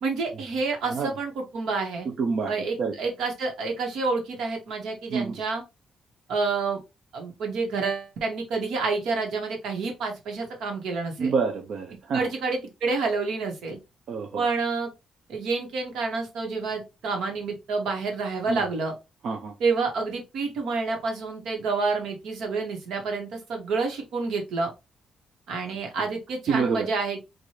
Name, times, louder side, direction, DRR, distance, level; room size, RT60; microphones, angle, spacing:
voice 1, 0.0-2.1 2.5-5.6 6.3-6.8 7.1-11.3 12.1-13.8 14.4-14.9 15.3-18.9 19.6-24.7 25.5-27.2, right 4 dB, 85° right, 3 dB, 1.3 m, -28 dB
voice 2, 2.1-2.9 5.1-5.3 11.2-12.3 14.1-14.5 18.5-18.6 19.2-19.5 26.5-26.9, right 5 dB, 65° right, 3 dB, 0.6 m, -27 dB
4.7 x 2.5 x 2.9 m, 0.25 s
cardioid pair, 120°, 0 cm